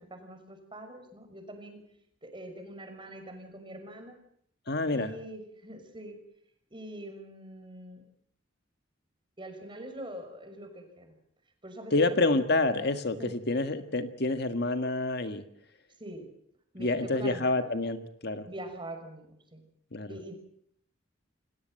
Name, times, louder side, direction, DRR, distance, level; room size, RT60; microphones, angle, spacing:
voice 1, 0.0-1.8 2.2-4.1 4.9-6.2 6.7-8.0 9.4-11.1 11.6-12.4 13.2-13.3 16.0-16.3 16.7-17.7 18.4-19.6 20.1-20.4, right 1 dB, 25° right, 5 dB, 5.8 m, -44 dB
voice 2, 4.7-5.1 11.9-15.4 16.8-18.4 19.9-20.1, left 2 dB, 55° left, 9 dB, 1.7 m, -28 dB
29.0 x 18.5 x 7.7 m, 0.69 s
head